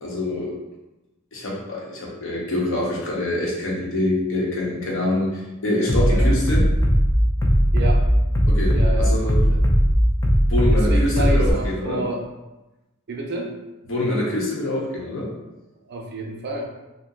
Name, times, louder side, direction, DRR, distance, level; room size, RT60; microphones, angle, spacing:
voice 1, 0.0-0.5 1.3-6.7 8.5-9.3 10.5-12.0 13.9-15.3, left 1 dB, 65° left, -3 dB, 0.8 m, -25 dB
Bass drum, 5.9-11.5, equal, 15° left, 0.3 m, -18 dB
voice 2, 7.7-8.1 8.7-9.2 9.5-9.7 10.7-12.3 13.1-13.6 15.9-16.7, right 1 dB, 50° right, 0 dB, 0.5 m, -29 dB
2.6 x 2.1 x 3.8 m, 1.0 s
head